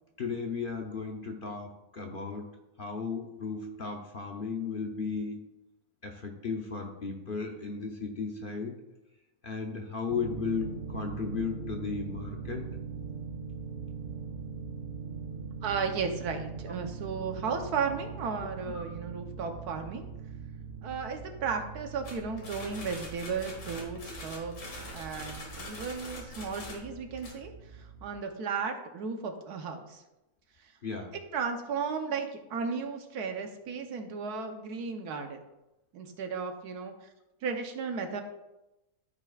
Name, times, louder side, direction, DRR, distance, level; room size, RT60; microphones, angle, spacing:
voice 1, 0.2-2.5 2.8-5.4 6.0-8.7 9.4-12.7 18.7-18.8 30.8-31.1, left 5 dB, 45° left, 2 dB, 0.7 m, -35 dB
sound 1, 10.1-28.2, right 5 dB, 65° right, 0.5 m, -42 dB
voice 2, 15.6-20.1 20.8-27.5 27.8-30.0 31.3-35.4 35.9-36.9 37.4-38.2, right 5 dB, 85° right, 5 dB, 1.4 m, -34 dB
sound 2, 22.0-27.3, left 2 dB, 75° left, 2.0 m, -44 dB
13.5 x 5.2 x 2.4 m, 0.96 s
omnidirectional pair, 1.6 m